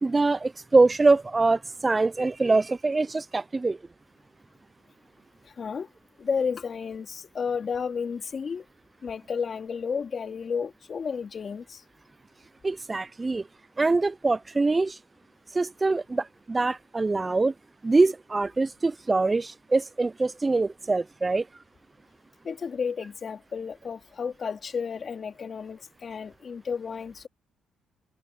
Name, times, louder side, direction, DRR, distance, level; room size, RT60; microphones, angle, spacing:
voice 1, 0.0-3.8 12.6-13.4 13.8-15.0 15.5-17.5 17.8-21.5, right 3 dB, 25° right, 0.3 m, -24 dB
voice 2, 5.6-5.9 6.2-8.6 9.0-11.8 22.4-27.3, left 6 dB, 45° left, 3.8 m, -32 dB
cardioid pair, 90°, 0 cm